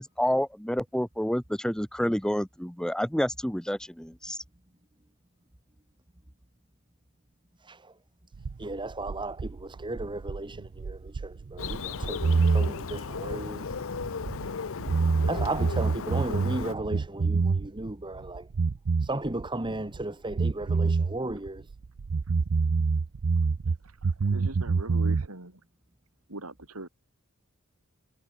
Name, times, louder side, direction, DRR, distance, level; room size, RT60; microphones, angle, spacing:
voice 1, 0.0-4.4, equal, 5° left, 1.0 m, -29 dB
voice 2, 7.6-7.9 8.6-13.8 15.3-18.5 19.0-21.7, right 2 dB, 20° right, 1.7 m, -35 dB
sound 1, 8.3-14.5 14.8-17.9 18.2-20.0 20.3-23.8 24.0-25.3, right 4 dB, 65° right, 0.5 m, -27 dB
Bird, 11.6-16.7, left 5 dB, 65° left, 0.7 m, -35 dB
voice 3, 23.8-25.6 26.3-26.9, right 2 dB, 85° right, 5.3 m, -41 dB
head